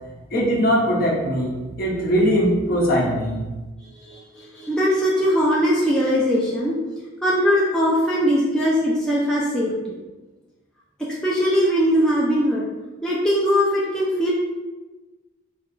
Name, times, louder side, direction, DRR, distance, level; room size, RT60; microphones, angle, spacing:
voice 1, 0.3-3.4, equal, 45° left, -4 dB, 0.9 m, -20 dB
voice 2, 4.0-6.8 7.2-9.9 11.2-12.6 13.0-14.3, equal, 5° left, -7 dB, 0.4 m, -20 dB
4.3 x 2.3 x 3.7 m, 1.2 s
head